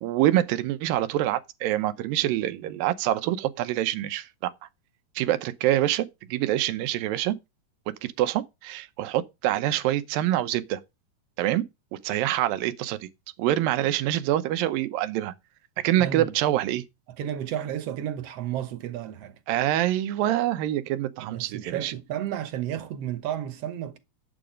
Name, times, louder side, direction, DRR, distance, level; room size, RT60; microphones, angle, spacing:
voice 1, 0.0-4.5 5.2-7.4 8.0-10.8 11.4-11.6 12.0-13.1 13.4-15.3 15.8-16.8 19.5-21.9, right 13 dB, 90° right, 2.6 m, -25 dB
voice 2, 16.0-16.3 17.1-19.4 21.2-24.0, right 10 dB, 65° right, 1.6 m, -32 dB
9.0 x 7.8 x 5.1 m
omnidirectional pair, 3.9 m